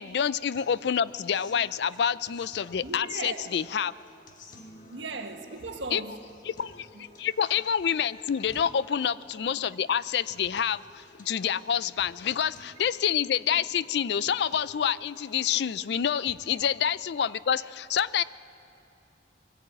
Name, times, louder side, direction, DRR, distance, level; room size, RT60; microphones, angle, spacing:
voice 1, 0.0-3.9 5.9-6.0 6.6-18.2, left 8 dB, 60° left, 0.4 m, -27 dB
sound 1, 0.5-16.6, left 2 dB, 45° left, 1.3 m, -53 dB
voice 2, 2.8-3.5 4.9-6.2 6.9-7.1, right 3 dB, 80° right, 1.5 m, -37 dB
22.0 x 14.5 x 8.7 m
head